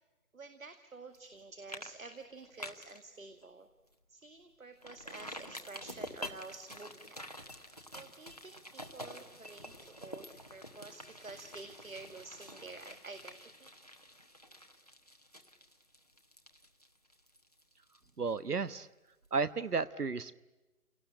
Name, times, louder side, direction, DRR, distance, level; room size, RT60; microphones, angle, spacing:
voice 1, 0.3-3.7 4.1-7.2 7.9-13.7, right 3 dB, 60° right, 8 dB, 2.1 m, -50 dB
sound 1, 1.1-1.4 1.7-1.9 2.2-3.0 3.4-3.5 3.9-4.0 4.8-18.4 18.7-18.8, equal, 25° left, 1.0 m, -48 dB
voice 2, 18.2-18.9 19.3-20.3, right 4 dB, 80° right, 15 dB, 1.3 m, -33 dB
29.0 x 18.5 x 10.0 m, 1.1 s
figure-of-eight pair, 180°, 45 cm